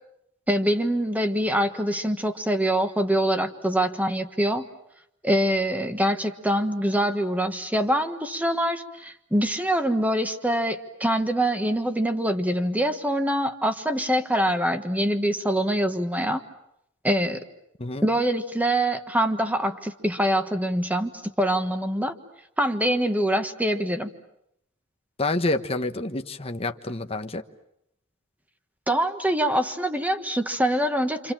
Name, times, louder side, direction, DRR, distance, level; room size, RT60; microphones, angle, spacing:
voice 1, 0.5-4.6 5.2-16.4 17.0-17.4 18.0-22.1 22.6-24.1 28.9-31.3, right 1 dB, 10° right, 7 dB, 1.5 m, -24 dB
voice 2, 25.2-27.4, left 2 dB, 30° left, 7 dB, 1.2 m, -28 dB
29.0 x 26.0 x 7.5 m, 0.79 s
head